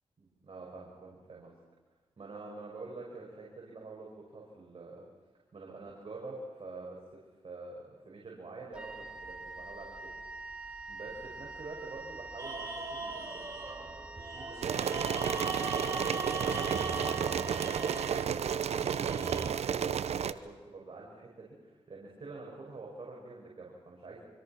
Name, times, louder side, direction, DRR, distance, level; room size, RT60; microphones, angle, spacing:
voice 1, 0.2-1.5 2.2-5.0 5.5-14.9 15.2-24.2, right 3 dB, 55° right, -3 dB, 6.3 m, -47 dB
Wind instrument woodwind instrument, 8.7-18.8, right 3 dB, 10° right, 4.1 m, -46 dB
sound 1, 12.4-19.5, right 2 dB, 30° right, 4.3 m, -40 dB
sound 2, 14.6-20.3, right 8 dB, 80° right, 0.8 m, -32 dB
26.0 x 24.5 x 6.1 m, 1.3 s
cardioid pair, 50°, 11 cm